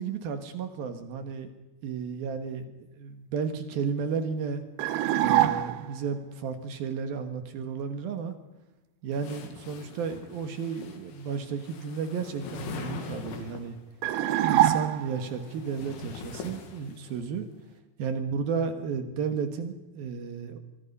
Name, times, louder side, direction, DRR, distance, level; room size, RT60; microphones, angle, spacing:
voice 1, 0.0-1.5 1.8-2.6 2.9-4.6 5.2-8.4 9.0-13.8 14.4-17.5 18.0-20.6, right 6 dB, 60° right, 8 dB, 2.7 m, -33 dB
Weird Build, 4.8-6.0 14.0-15.3, right 13 dB, 80° right, 2.3 m, -24 dB
sound 1, 9.1-13.8 14.8-17.3, left 6 dB, 70° left, 4.6 m, -43 dB
24.5 x 23.5 x 5.5 m, 1.0 s
omnidirectional pair, 5.9 m